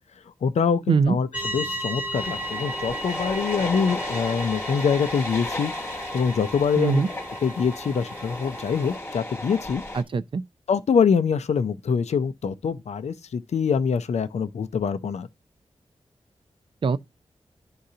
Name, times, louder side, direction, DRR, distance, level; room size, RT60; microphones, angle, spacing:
voice 1, 0.4-1.3 1.5-7.0 7.4-9.8 10.7-15.3, left 6 dB, 85° left, 0.5 m, -24 dB
sound 1, 1.3-9.0, right 1 dB, 15° right, 0.8 m, -35 dB
sound 2, 2.1-10.0, left 1 dB, 20° left, 1.1 m, -34 dB
voice 2, 6.8-7.1 9.9-10.4 16.8-17.0, right 5 dB, 50° right, 0.4 m, -22 dB
11.5 x 3.8 x 2.8 m
wide cardioid pair, 95°, 11 cm